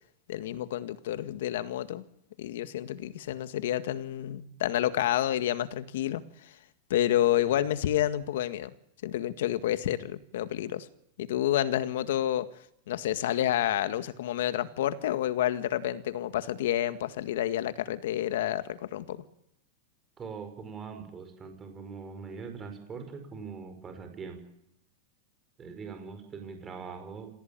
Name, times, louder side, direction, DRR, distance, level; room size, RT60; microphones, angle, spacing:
voice 1, 0.3-2.0 2.4-6.5 6.9-8.7 9.0-10.9 11.2-12.5 12.9-19.2, left 12 dB, 75° left, 12 dB, 1.8 m, -29 dB
voice 2, 20.2-24.4 25.6-27.3, right 5 dB, 20° right, 7 dB, 5.1 m, -42 dB
27.0 x 17.0 x 8.9 m, 0.80 s
supercardioid pair, 145°, 0 cm